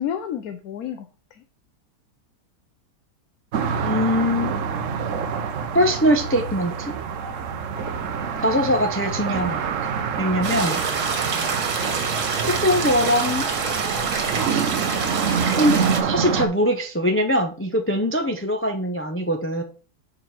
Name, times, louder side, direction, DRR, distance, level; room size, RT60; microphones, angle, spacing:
voice 1, 0.0-1.4 7.8-8.5 11.2-11.3, left 9 dB, 70° left, 7 dB, 1.1 m, -32 dB
sound 1, 3.5-16.5, right 6 dB, 60° right, 1.0 m, -26 dB
voice 2, 3.8-4.5 5.7-6.9 8.4-9.6 10.2-10.8 12.5-13.4 14.5-14.6 15.6-19.6, equal, 20° left, 5 dB, 0.3 m, -22 dB
sound 2, 10.4-16.0, right 4 dB, 80° right, 1.9 m, -27 dB
6.9 x 3.9 x 5.9 m, 0.39 s
omnidirectional pair, 1.6 m